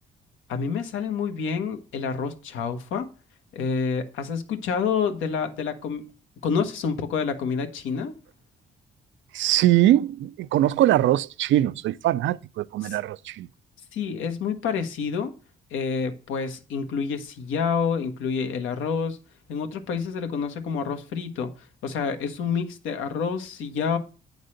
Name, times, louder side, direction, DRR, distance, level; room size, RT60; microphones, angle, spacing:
voice 1, 0.5-3.1 3.5-6.1 6.4-8.2 12.8-13.0 13.9-15.3 15.7-19.2 19.5-21.5 21.8-24.0, left 6 dB, 85° left, 1.2 m, -28 dB
voice 2, 9.3-13.5, right 13 dB, 70° right, 0.4 m, -22 dB
8.7 x 4.0 x 6.4 m
cardioid pair, 90°, 20 cm